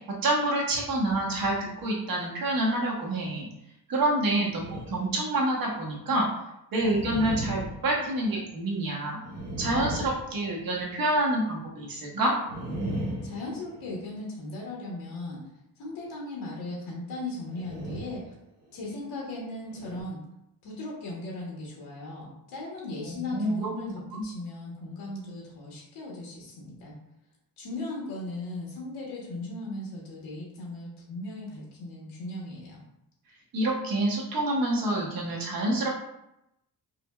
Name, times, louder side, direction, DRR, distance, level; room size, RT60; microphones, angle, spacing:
voice 1, 0.2-3.5 3.9-6.3 6.7-9.2 9.6-12.3 23.0-23.5 24.1-24.2 33.5-36.1, right 1 dB, 60° right, -2 dB, 1.0 m, -27 dB
sound 1, 4.5-5.2 5.7-5.8 6.8-8.6 9.2-10.9 12.4-14.2 17.5-18.3 18.7-18.9 19.7-20.0, right 1 dB, 40° right, 0.9 m, -37 dB
voice 2, 13.2-15.4 15.8-18.3 18.7-20.2 20.6-27.0 27.6-32.8, left 2 dB, 90° left, -3 dB, 1.0 m, -37 dB
4.9 x 2.1 x 2.3 m, 0.83 s
wide cardioid pair, 160°, 39 cm